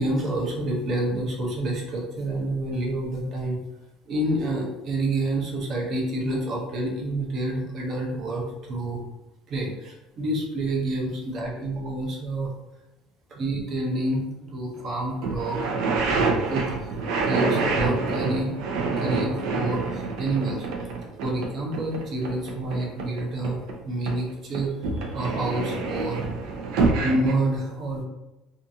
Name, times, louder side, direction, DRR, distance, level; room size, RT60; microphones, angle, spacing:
voice 1, 0.0-3.6 4.1-9.0 9.5-12.5 13.3-15.6 16.0-16.9 17.2-18.5 19.0-20.7 21.2-26.2 27.0-28.0, right 1 dB, 35° right, -2 dB, 0.7 m, -28 dB
sound 1, 14.8-14.9 15.2-23.8 24.1-27.3, right 3 dB, 75° right, 0.5 m, -27 dB
2.6 x 2.4 x 2.6 m, 0.97 s
cardioid pair, 175°, 0 cm